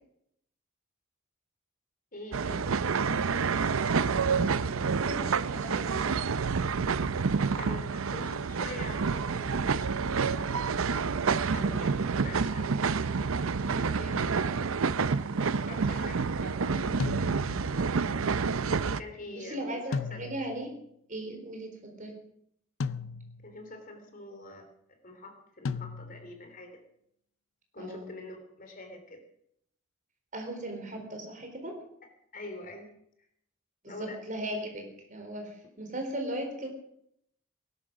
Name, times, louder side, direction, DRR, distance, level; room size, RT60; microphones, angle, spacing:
voice 1, 2.1-2.7 7.5-10.5 11.0-13.2 13.7-14.4 15.3-18.2 18.9-20.3 23.4-26.8 27.7-29.2 32.3-32.9 33.8-34.2, left 2 dB, 40° left, 5 dB, 3.3 m, -45 dB
sound 1, 2.3-19.0, right 5 dB, 80° right, 0.6 m, -28 dB
voice 2, 4.9-6.1 11.5-11.9 13.7-14.2 19.2-20.7 21.1-22.1 27.8-28.2 30.3-31.7 33.8-36.7, right 1 dB, 40° right, 4 dB, 4.2 m, -38 dB
sound 2, 17.0-17.8 19.9-20.7 22.8-23.6 25.6-26.4, left 4 dB, 65° left, 0.6 m, -35 dB
19.5 x 11.5 x 6.2 m, 0.72 s
head